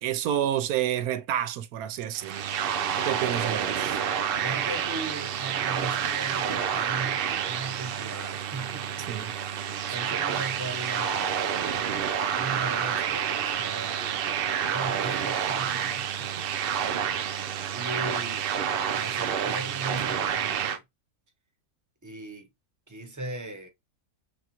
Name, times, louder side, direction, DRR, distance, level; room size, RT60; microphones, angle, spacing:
voice 1, 0.0-2.4 3.0-4.0 9.1-9.3 9.9-10.0, right 11 dB, 90° right, 1.1 m, -29 dB
sound 1, 2.2-20.8, right 8 dB, 75° right, 0.5 m, -29 dB
voice 2, 4.3-9.1 9.6-11.4 12.1-16.3 16.8-18.5 18.9-20.8 22.0-22.5 22.9-23.7, right 3 dB, 15° right, 0.8 m, -38 dB
5.5 x 2.4 x 2.8 m
omnidirectional pair, 1.5 m